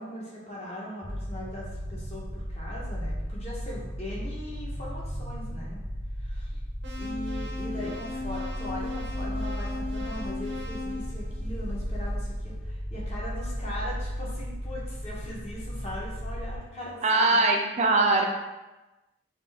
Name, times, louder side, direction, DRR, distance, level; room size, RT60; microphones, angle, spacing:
voice 1, 0.0-5.8 6.2-6.6 7.0-17.0 17.3-17.5, left 1 dB, 35° left, -5 dB, 0.9 m, -40 dB
sound 1, 1.0-16.6, equal, 5° left, 0.7 m, -35 dB
sound 2, 6.8-12.0, left 3 dB, 70° right, 0.7 m, -37 dB
voice 2, 17.0-18.2, right 2 dB, 35° right, 1 dB, 0.5 m, -22 dB
4.2 x 2.6 x 3.3 m, 1.1 s
head